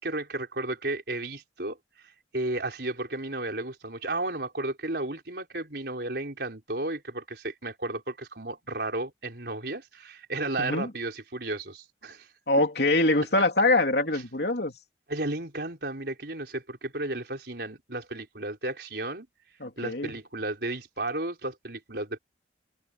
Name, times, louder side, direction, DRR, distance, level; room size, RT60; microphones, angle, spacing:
voice 1, 0.0-1.8 2.3-12.3 15.1-19.3 19.8-22.2, right 2 dB, 60° right, 4.7 m, -33 dB
voice 2, 10.6-10.9 12.5-14.7 19.6-20.1, left 2 dB, 60° left, 3.3 m, -24 dB
head